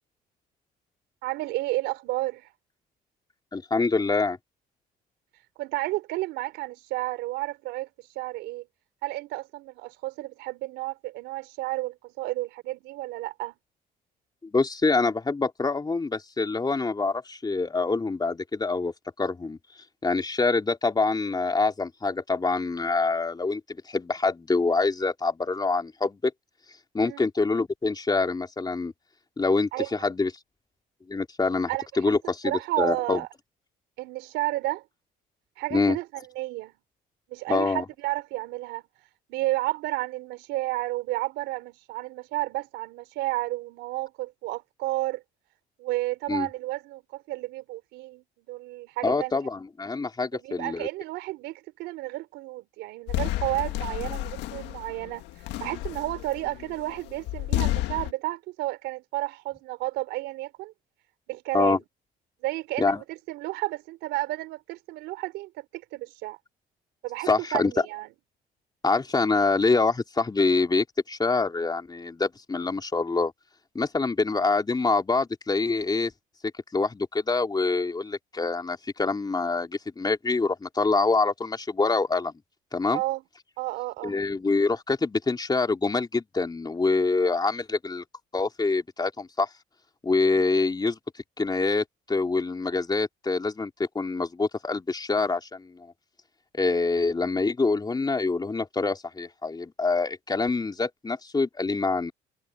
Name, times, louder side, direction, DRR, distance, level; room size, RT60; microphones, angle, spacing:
voice 1, 1.2-2.5 5.6-7.9 8.2-8.7 9.0-13.5 27.0-27.2 29.7-30.1 31.7-31.9 32.4-33.3 34.0-34.8 35.6-36.7 37.3-38.8 39.3-45.2 45.8-49.3 50.4-60.7 61.3-61.8 62.4-66.4 67.0-68.1 82.9-83.2 83.6-84.1, right 18 dB, 85° right, 3.6 m, -32 dB
voice 2, 3.5-4.4 14.4-19.6 20.0-26.3 26.9-28.9 29.4-30.3 31.1-31.7 32.0-33.2 35.7-36.0 37.5-37.9 46.3-46.5 49.0-50.9 61.5-61.8 62.8-63.0 67.3-67.7 68.8-73.3 73.8-76.1 76.7-82.3 82.7-83.0 84.0-88.0 88.3-89.5 90.0-91.0 91.4-95.9 96.5-102.1, left 3 dB, 25° left, 3.5 m, -25 dB
sound 1, 53.1-58.1, left 16 dB, 85° left, 1.8 m, -31 dB
supercardioid pair, 80°, 18 cm